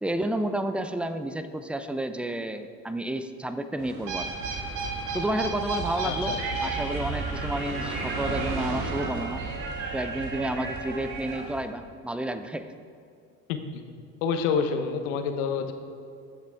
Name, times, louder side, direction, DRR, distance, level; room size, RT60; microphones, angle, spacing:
voice 1, 0.0-4.3 5.1-6.3 6.6-9.4 9.9-12.7, right 1 dB, 5° right, 10 dB, 0.5 m, -31 dB
sound 1, 3.8-11.6, right 4 dB, 70° right, 1.8 m, -32 dB
sound 2, 5.6-10.3, left 4 dB, 50° left, 2.5 m, -44 dB
voice 2, 6.0-6.4 13.5-13.8 14.2-15.7, left 6 dB, 70° left, 7 dB, 1.0 m, -28 dB
Wind instrument woodwind instrument, 7.5-11.4, right 4 dB, 30° right, 1.8 m, -40 dB
14.5 x 6.7 x 3.5 m, 2.4 s
hypercardioid pair, 70°, 40 cm